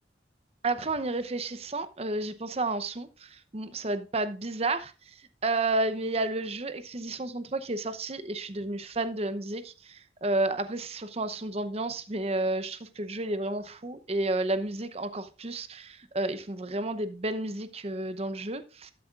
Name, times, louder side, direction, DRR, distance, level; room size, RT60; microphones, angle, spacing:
voice 1, 0.6-4.9 5.4-18.9, right 2 dB, 35° right, 0.8 m, -31 dB
12.5 x 7.7 x 2.5 m
head